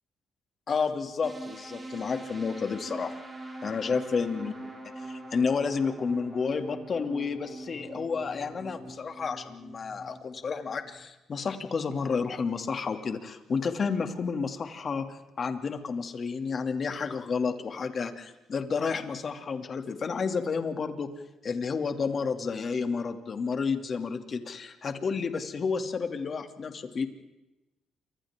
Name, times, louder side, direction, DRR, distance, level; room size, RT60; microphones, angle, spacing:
voice 1, 0.7-3.1 3.6-4.5 5.0-21.1 21.4-27.1, left 5 dB, 45° left, 6 dB, 2.6 m, -31 dB
sound 1, 1.2-11.0, right 2 dB, 20° right, 6.7 m, -43 dB
29.0 x 26.0 x 3.8 m, 1.0 s
cardioid pair, 90°, 0 cm